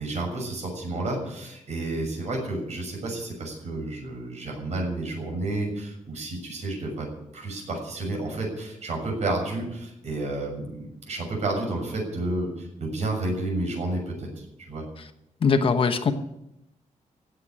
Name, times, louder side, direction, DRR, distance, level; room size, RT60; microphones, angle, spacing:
voice 1, 0.0-7.1 7.3-14.8, right 2 dB, 60° right, 1 dB, 6.7 m, -31 dB
voice 2, 15.4-16.1, left 5 dB, 45° left, 7 dB, 1.1 m, -21 dB
16.5 x 8.2 x 10.0 m, 0.85 s
wide cardioid pair, 175°, 13 cm